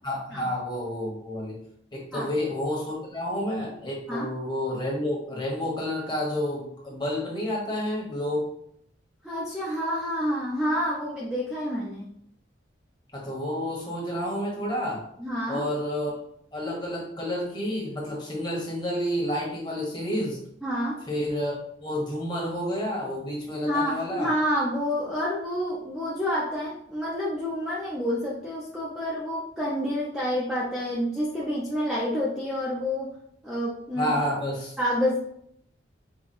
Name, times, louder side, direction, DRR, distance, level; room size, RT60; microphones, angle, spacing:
voice 1, 0.0-1.6 1.9-8.5 13.1-15.0 15.5-16.2 16.5-20.4 21.1-24.3 33.9-34.7, left 1 dB, 25° left, -3 dB, 1.3 m, -30 dB
voice 2, 9.2-12.1 15.2-15.7 20.6-21.0 23.6-33.1 33.4-34.2 34.8-35.2, equal, ahead, -7 dB, 0.6 m, -28 dB
4.9 x 2.3 x 4.3 m, 0.71 s
head